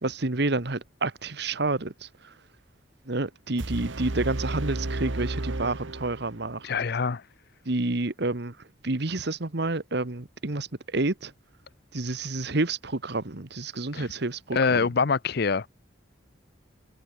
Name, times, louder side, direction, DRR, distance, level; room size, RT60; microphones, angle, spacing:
voice 1, 0.0-2.3 3.0-6.7 7.6-8.6 8.8-11.3 11.9-14.9, right 2 dB, 60° right, 1.5 m, -29 dB
sound 1, 3.6-6.6, right 2 dB, 90° right, 1.5 m, -32 dB
voice 2, 6.6-7.2 14.0-14.1 14.5-15.7, left 5 dB, 60° left, 0.6 m, -24 dB
head